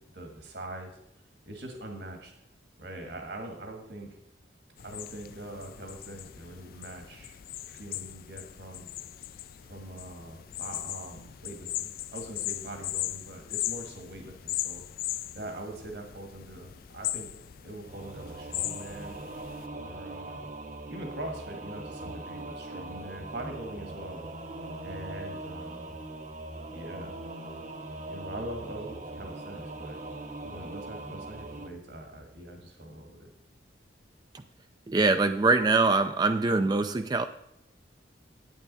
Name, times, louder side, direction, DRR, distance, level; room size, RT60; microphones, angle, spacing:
voice 1, 0.1-1.0 1.5-2.3 2.8-4.2 4.8-7.4 7.7-8.9 9.6-19.2 19.7-20.5 20.9-24.3 24.8-26.0 26.7-27.2 28.1-30.0 30.4-33.3, right 1 dB, 65° right, 3 dB, 1.7 m, -42 dB
sound 1, 4.8-19.7, left 14 dB, 50° left, 0.3 m, -38 dB
Singing / Musical instrument, 17.8-31.7, right 2 dB, 40° right, 0.8 m, -41 dB
voice 2, 34.9-37.2, right 3 dB, 20° right, 8 dB, 0.3 m, -23 dB
9.2 x 9.0 x 4.1 m, 0.77 s
head